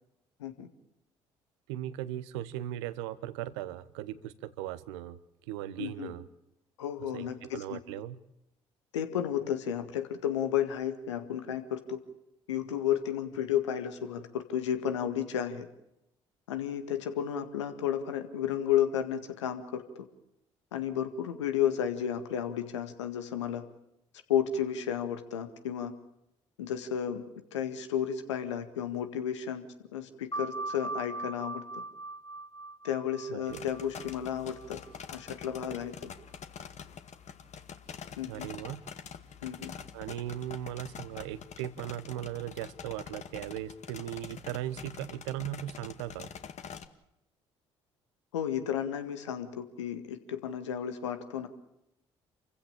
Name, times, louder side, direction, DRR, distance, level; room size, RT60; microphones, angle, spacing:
voice 1, 1.7-5.2 5.5-6.2 7.1-8.2 33.3-33.6 38.3-38.8 39.9-46.3, right 13 dB, 80° right, 15 dB, 1.2 m, -38 dB
voice 2, 5.8-6.1 6.8-7.8 8.9-12.0 12.5-15.7 16.5-20.1 20.7-23.6 24.3-25.9 26.6-27.2 27.5-29.6 29.9-31.8 32.8-34.8 35.1-36.1 38.2-38.5 39.4-39.7 48.3-51.5, left 9 dB, 85° left, 8 dB, 1.9 m, -32 dB
sound 1, 30.3-35.5, right 2 dB, 25° left, 1.8 m, -40 dB
sound 2, 33.5-46.9, left 7 dB, 50° left, 2.0 m, -46 dB
28.5 x 15.5 x 8.7 m, 0.85 s
hypercardioid pair, 50°, 15 cm